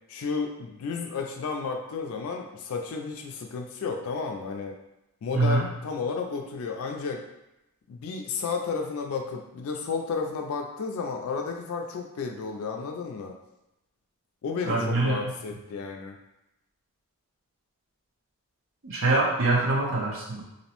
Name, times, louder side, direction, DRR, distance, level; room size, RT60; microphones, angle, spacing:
voice 1, 0.1-4.7 5.2-7.2 7.9-13.4 14.4-16.2, left 4 dB, 70° left, 3 dB, 0.3 m, -32 dB
voice 2, 5.3-5.6 14.6-15.2 18.8-20.4, right 2 dB, 65° right, -3 dB, 0.7 m, -24 dB
2.6 x 2.0 x 2.9 m, 0.89 s
head